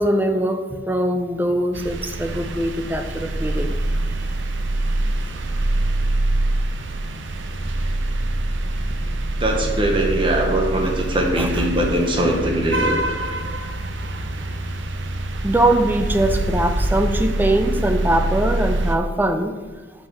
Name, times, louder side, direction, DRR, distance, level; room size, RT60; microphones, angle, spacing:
voice 1, 0.0-3.8 11.4-11.5 15.4-19.6, right 1 dB, 10° right, 6 dB, 0.5 m, -21 dB
sound 1, 1.7-19.0, right 1 dB, 90° right, 0.6 m, -24 dB
voice 2, 9.4-13.0, right 1 dB, 30° right, 2 dB, 0.9 m, -21 dB
5.6 x 4.8 x 5.6 m, 1.3 s
head